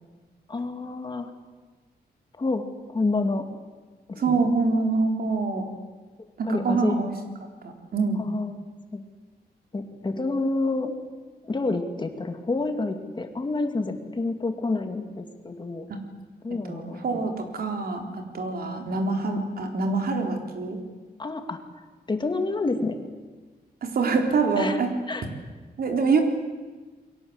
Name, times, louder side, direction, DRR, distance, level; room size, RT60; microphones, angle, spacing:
voice 1, 0.5-1.3 2.4-3.5 4.1-4.4 6.5-7.0 8.2-8.6 8.9-9.0 9.7-10.9 11.4-15.9 16.4-17.2 21.2-21.6 22.1-23.0 24.6-24.8 25.1-25.2, left 3 dB, 25° left, 6 dB, 2.5 m, -28 dB
voice 2, 4.2-5.6 6.4-7.1 7.6-8.2 15.9-16.0 16.6-20.8 23.8-24.9 25.8-26.2, right 4 dB, 65° right, 4 dB, 4.0 m, -25 dB
29.0 x 23.0 x 8.1 m, 1.3 s
wide cardioid pair, 160°, 17 cm